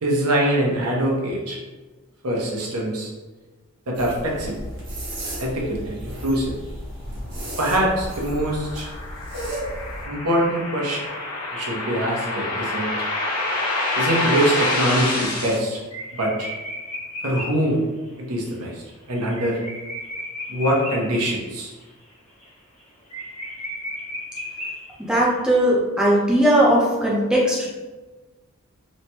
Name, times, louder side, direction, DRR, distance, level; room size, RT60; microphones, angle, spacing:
voice 1, 0.0-1.6 2.2-3.1 3.9-4.5 5.4-6.5 7.6-8.9 10.1-11.0 11.5-12.9 13.9-15.8 16.1-16.5 17.2-17.8 18.2-19.6 20.5-21.7, right 1 dB, 90° right, -2 dB, 0.8 m, -23 dB
sound 1, 3.9-10.0, equal, 55° right, 1.0 m, -33 dB
sound 2, 8.0-15.6, left 2 dB, 80° left, 0.8 m, -27 dB
sound 3, 11.5-17.7 18.1-18.2 18.4-18.5 18.8-21.4 21.8-22.1 22.4-22.5 22.8-22.9 23.1-25.2, left 1 dB, 30° left, 0.9 m, -35 dB
voice 2, 25.0-27.7, right 1 dB, 5° right, -5 dB, 0.5 m, -18 dB
3.2 x 2.1 x 2.8 m, 1.2 s
head